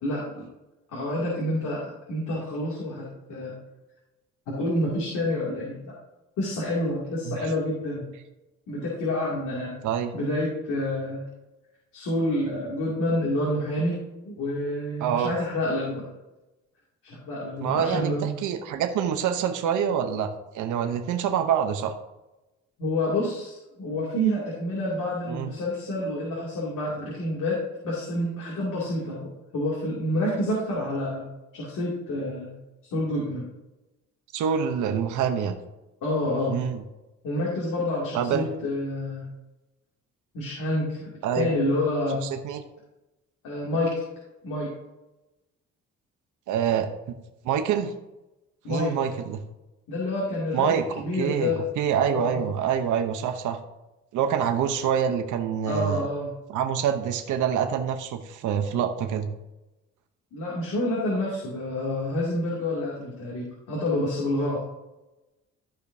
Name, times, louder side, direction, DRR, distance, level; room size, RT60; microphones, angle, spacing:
voice 1, 0.0-0.4 0.9-3.5 4.5-5.9 6.4-8.0 8.7-9.8 10.1-11.3 11.9-14.0 14.2-16.1 17.0-18.3 22.8-27.6 27.8-32.5 32.9-33.5 36.0-36.6 37.2-39.3 40.3-41.1 41.3-42.2 43.4-43.9 44.4-44.7 48.6-48.9 49.9-51.6 52.1-52.5 55.6-56.3 60.3-64.6, left 1 dB, 80° left, -5 dB, 2.7 m, -28 dB
voice 2, 15.0-15.3 17.6-22.0 25.3-25.5 34.3-35.6 36.5-36.8 38.1-38.5 41.2-41.5 42.3-42.6 46.5-46.9 47.4-47.9 48.7-49.4 50.5-50.9 51.1-53.6 54.1-56.1 56.5-59.3, right 8 dB, 80° right, 6 dB, 0.9 m, -26 dB
14.0 x 5.1 x 2.7 m, 0.99 s
cardioid pair, 90°, 30 cm